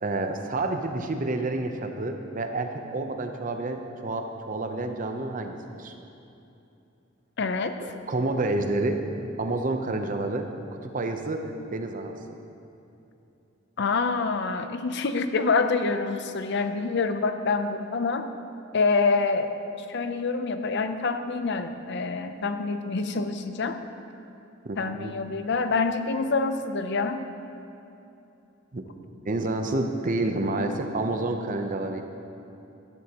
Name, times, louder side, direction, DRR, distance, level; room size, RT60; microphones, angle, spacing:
voice 1, 0.0-5.9 7.8-9.0 9.4-10.5 10.8-12.2 24.6-25.1 28.7-28.8 29.2-32.0, right 2 dB, 40° right, 5 dB, 0.7 m, -29 dB
voice 2, 7.4-7.8 13.8-18.2 18.7-19.5 19.9-23.8 24.8-27.2, left 4 dB, 60° left, 9 dB, 0.6 m, -26 dB
13.0 x 11.0 x 3.0 m, 2.8 s
head